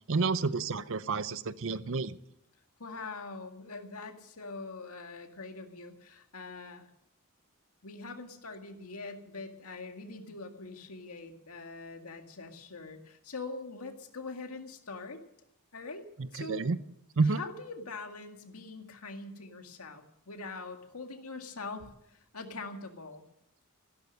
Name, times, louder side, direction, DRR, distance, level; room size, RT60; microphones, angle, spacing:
voice 1, 0.1-2.2 16.5-16.8 17.2-17.4, right 4 dB, 65° right, 15 dB, 0.7 m, -29 dB
voice 2, 2.8-6.9 7.8-15.2 15.7-16.7 17.2-23.3, left 3 dB, 90° left, 5 dB, 2.0 m, -43 dB
15.5 x 12.5 x 6.5 m, 0.78 s
head